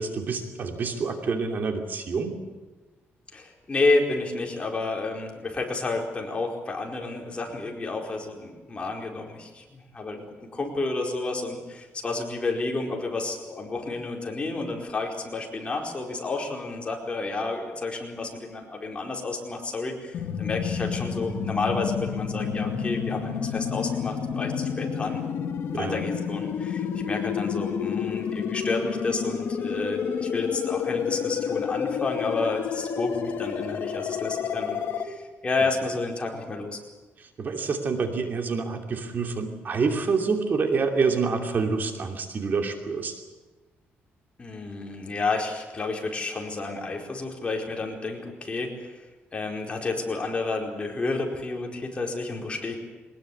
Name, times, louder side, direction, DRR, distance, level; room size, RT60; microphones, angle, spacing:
voice 1, 0.0-2.4 25.7-26.0 37.2-43.2, right 4 dB, 45° right, 4 dB, 2.9 m, -27 dB
voice 2, 3.3-10.2 10.5-25.2 25.7-36.8 44.4-49.0 49.3-52.7, left 3 dB, 25° left, 1 dB, 4.6 m, -30 dB
sound 1, 20.1-35.0, left 7 dB, 70° left, 2.5 m, -29 dB
22.5 x 20.0 x 8.6 m, 1.2 s
cardioid pair, 120°, 4 cm